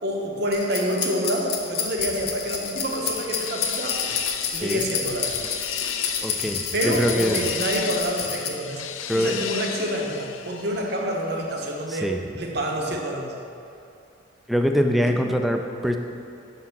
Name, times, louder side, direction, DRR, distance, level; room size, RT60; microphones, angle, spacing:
voice 1, 0.0-4.0 4.5-5.4 6.7-8.9 9.1-12.1 12.4-13.3, equal, 60° right, 1 dB, 0.9 m, -27 dB
sound 1, 0.5-8.5, left 6 dB, 55° left, 0.8 m, -29 dB
sound 2, 2.2-11.3, left 9 dB, 90° left, 0.4 m, -35 dB
voice 2, 6.2-7.5 9.1-9.4 11.9-12.2 14.5-16.0, equal, ahead, 4 dB, 0.4 m, -23 dB
6.1 x 5.8 x 5.8 m, 2.6 s
head